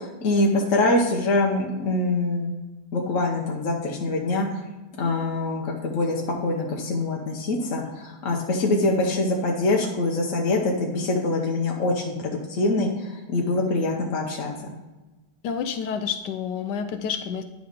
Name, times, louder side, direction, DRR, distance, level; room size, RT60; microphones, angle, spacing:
voice 1, 0.0-2.5 2.9-4.6 5.0-14.7, left 2 dB, 55° left, -1 dB, 1.2 m, -24 dB
voice 2, 15.4-17.4, left 7 dB, 80° left, 8 dB, 1.2 m, -29 dB
10.0 x 3.8 x 5.0 m, 1.1 s
omnidirectional pair, 1.9 m